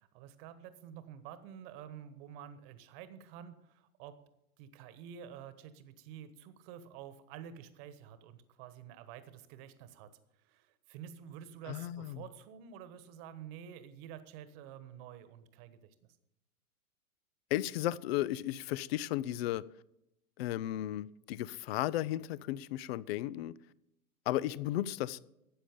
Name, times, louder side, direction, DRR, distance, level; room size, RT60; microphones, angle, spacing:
voice 1, 0.0-4.2 4.6-10.1 10.4-15.9, right 9 dB, 40° right, 1.3 m, -49 dB
voice 2, 11.7-12.2 17.5-19.7 20.4-23.5 24.3-25.2, left 14 dB, 45° left, 0.5 m, -34 dB
13.0 x 8.7 x 5.2 m
hypercardioid pair, 115°, 44 cm